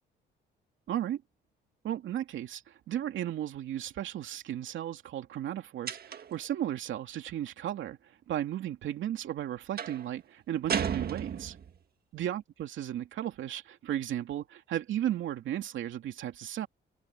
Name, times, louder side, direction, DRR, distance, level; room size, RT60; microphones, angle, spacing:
voice 1, 0.9-1.2 1.8-11.6 12.1-16.7, right 11 dB, 75° right, 2.8 m, -35 dB
sound 1, 5.9-6.4 9.8-10.1 10.7-11.8, right 7 dB, 50° right, 1.7 m, -33 dB
cardioid pair, 90°, 20 cm